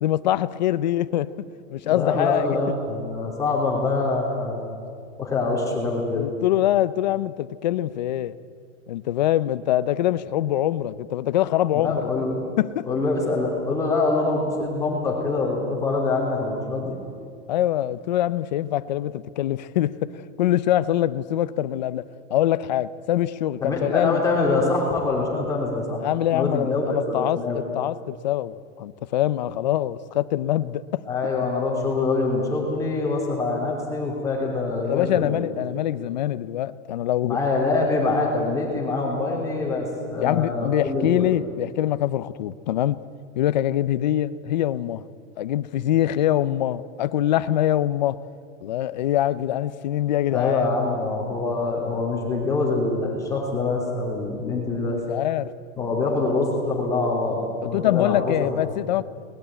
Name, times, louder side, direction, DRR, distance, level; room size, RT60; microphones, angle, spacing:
voice 1, 0.0-2.6 6.1-8.4 8.9-12.1 12.6-12.9 17.5-24.2 26.0-31.0 34.8-37.4 40.2-43.0 43.4-45.0 45.4-48.2 48.6-50.7 54.9-55.5 57.6-59.0, left 12 dB, 35° left, 15 dB, 0.5 m, -24 dB
voice 2, 1.8-4.7 5.2-6.3 11.7-12.4 12.8-17.0 23.6-26.0 26.3-27.6 31.1-35.4 37.2-41.3 50.3-55.0 55.8-58.7, left 3 dB, 10° left, -3 dB, 3.3 m, -25 dB
22.5 x 20.0 x 8.9 m, 2.2 s
supercardioid pair, 175°, 39 cm